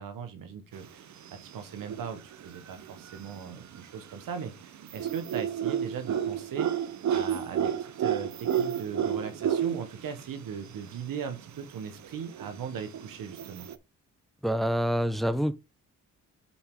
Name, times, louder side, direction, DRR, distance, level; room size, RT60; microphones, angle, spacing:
voice 1, 0.0-6.7 7.1-13.7, right 7 dB, 85° right, 1.4 m, -39 dB
sound 1, 1.0-1.5 1.8-3.8 4.2-10.2 10.5-10.6 10.8-10.9 11.4-13.8, right 9 dB, 60° right, 0.8 m, -31 dB
voice 2, 14.4-15.5, equal, ahead, 0.9 m, -26 dB
8.6 x 4.5 x 3.8 m
cardioid pair, 65°, 33 cm